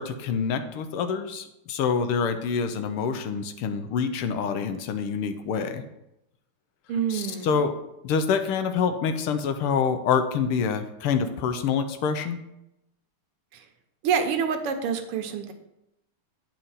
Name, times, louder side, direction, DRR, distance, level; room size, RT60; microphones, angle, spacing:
voice 1, 0.0-5.8 7.1-7.8 8.0-12.4, left 6 dB, 85° left, 8 dB, 1.7 m, -26 dB
voice 2, 6.9-7.5 13.5-13.6 14.0-15.5, right 7 dB, 85° right, 6 dB, 1.8 m, -27 dB
9.2 x 4.5 x 5.6 m, 0.86 s
omnidirectional pair, 2.4 m